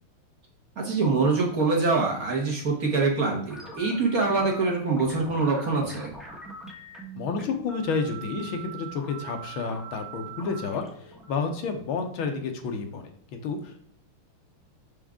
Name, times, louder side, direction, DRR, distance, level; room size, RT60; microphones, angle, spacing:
voice 1, 0.8-6.1, right 3 dB, 50° right, -1 dB, 1.3 m, -24 dB
sound 1, 3.5-12.4, right 3 dB, ahead, 0.5 m, -43 dB
voice 2, 7.1-13.8, left 4 dB, 75° left, 5 dB, 1.6 m, -30 dB
6.2 x 5.0 x 3.5 m, 0.63 s
omnidirectional pair, 2.4 m